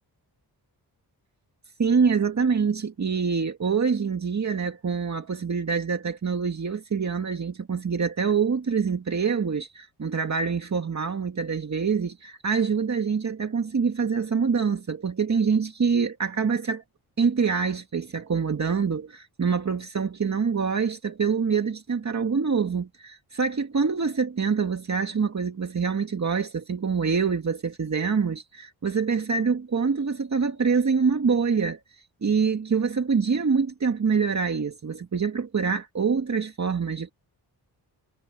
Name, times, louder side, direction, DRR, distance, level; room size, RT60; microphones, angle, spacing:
voice 1, 1.8-16.8 17.2-31.8 32.2-37.1, right 5 dB, 45° right, 2.1 m, -25 dB
cardioid pair, 90°, 40 cm